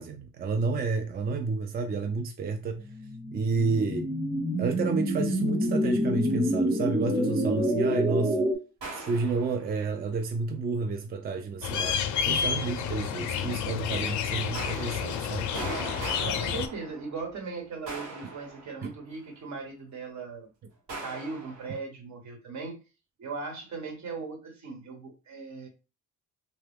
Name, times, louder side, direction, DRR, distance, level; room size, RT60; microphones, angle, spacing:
voice 1, 0.0-2.8 3.3-4.1 4.6-8.5 8.9-12.0 12.3-15.5 18.8-18.9, right 4 dB, 30° right, 0.4 m, -30 dB
sound 1, 3.0-8.5, equal, 10° right, 0.8 m, -27 dB
sound 2, 8.8-9.9 14.5-17.4 17.9-19.2 20.9-21.8, right 3 dB, 90° right, 1.2 m, -40 dB
sound 3, 11.6-16.7, left 8 dB, 70° left, 0.5 m, -30 dB
voice 2, 16.2-20.5 21.0-22.8 23.2-25.7, right 4 dB, 65° right, 1.2 m, -38 dB
2.8 x 2.2 x 3.4 m
cardioid pair, 90°, 30 cm